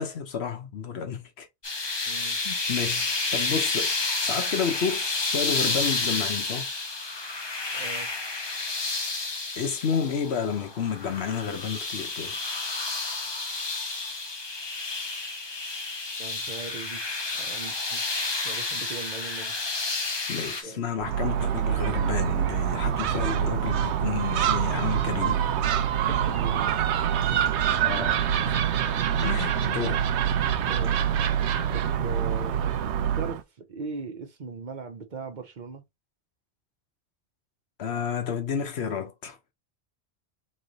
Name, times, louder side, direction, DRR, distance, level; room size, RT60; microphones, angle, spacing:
voice 1, 0.0-1.5 2.3-3.9 4.2-6.7 9.6-12.3 20.3-25.4 27.8-28.6 28.9-30.0 37.8-39.4, left 6 dB, 75° left, 1.1 m, -31 dB
sound 1, 1.6-20.6, left 3 dB, 30° left, 0.7 m, -30 dB
voice 2, 2.1-2.4 7.7-8.1 16.2-17.1 17.3-19.6 20.4-20.9 23.8-24.2 25.8-26.8 30.7-31.1 31.7-32.6 33.1-35.8, right 4 dB, 50° right, 0.9 m, -39 dB
Gull seagull, 21.0-33.4, right 9 dB, 85° right, 0.9 m, -25 dB
3.3 x 3.1 x 3.9 m
omnidirectional pair, 1.1 m